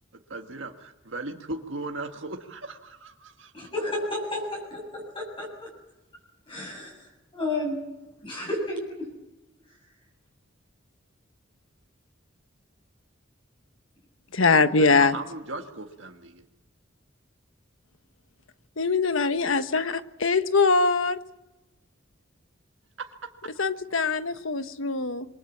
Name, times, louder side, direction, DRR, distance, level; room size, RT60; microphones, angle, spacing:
voice 1, 0.1-3.7 14.8-16.5 23.0-23.3, right 2 dB, 65° right, 2 dB, 1.7 m, -38 dB
voice 2, 3.5-5.7 6.5-7.8 8.2-9.1 9.7-9.8, left 1 dB, 25° left, -2 dB, 7.6 m, -32 dB
voice 3, 14.3-15.2 18.8-21.2 23.6-25.3, left 4 dB, 85° left, 10 dB, 1.3 m, -22 dB
26.5 x 23.5 x 7.4 m, 1.0 s
head